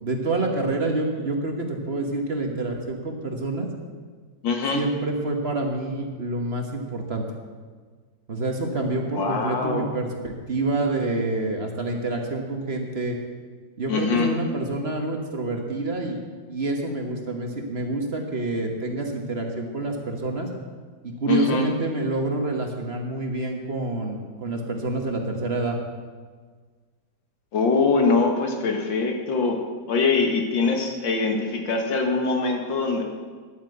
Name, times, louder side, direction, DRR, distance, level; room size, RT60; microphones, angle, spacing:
voice 1, 0.0-3.7 4.7-7.2 8.3-13.2 13.8-16.2 16.5-20.5 21.0-25.8, right 2 dB, 35° right, 2 dB, 1.4 m, -27 dB
voice 2, 4.4-4.8 9.1-9.9 13.9-14.3 21.3-21.7 27.5-29.6 29.9-33.0, left 4 dB, 90° left, 3 dB, 2.3 m, -23 dB
11.0 x 9.1 x 7.8 m, 1.5 s
omnidirectional pair, 2.0 m